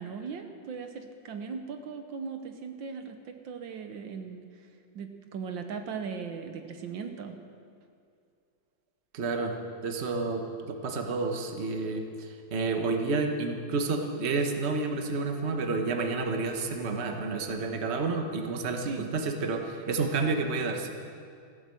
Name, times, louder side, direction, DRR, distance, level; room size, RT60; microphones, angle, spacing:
voice 1, 0.0-4.7 4.9-7.4 18.9-19.1, right 5 dB, 75° right, 6 dB, 1.7 m, -38 dB
voice 2, 9.1-9.5 9.8-20.9, right 3 dB, 40° right, 4 dB, 1.3 m, -30 dB
15.0 x 12.0 x 7.7 m, 2.4 s
omnidirectional pair, 2.1 m